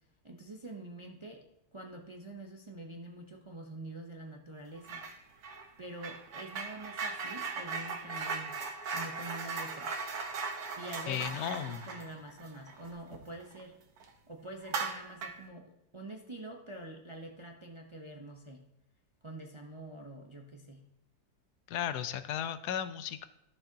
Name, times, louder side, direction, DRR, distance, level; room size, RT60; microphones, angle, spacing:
voice 1, 0.2-1.4 1.7-5.0 5.8-8.5 8.9-10.0 10.8-13.8 14.3-18.6 19.2-20.8, right 2 dB, 35° right, 1 dB, 0.5 m, -46 dB
sound 1, 4.8-5.2 5.4-13.6 14.0-14.1 14.6-15.5, right 4 dB, 70° right, 1.4 m, -38 dB
voice 2, 11.1-11.9 21.7-23.3, left 9 dB, 80° left, 12 dB, 1.2 m, -35 dB
14.0 x 6.7 x 2.8 m, 0.86 s
omnidirectional pair, 1.7 m